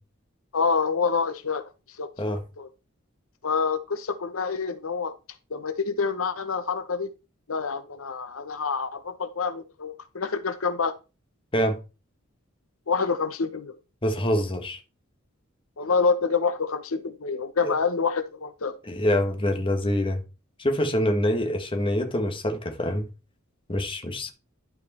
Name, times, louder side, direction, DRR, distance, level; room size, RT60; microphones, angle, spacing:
voice 1, 0.5-1.7 2.0-2.7 3.4-5.1 5.5-7.1 7.5-10.9 12.9-13.8 15.8-18.7, left 5 dB, 85° left, 0.9 m, -27 dB
voice 2, 14.0-14.8 17.6-17.7 18.9-20.2 20.6-23.1 23.7-24.3, left 1 dB, 25° left, 1.4 m, -25 dB
11.5 x 4.7 x 4.3 m
head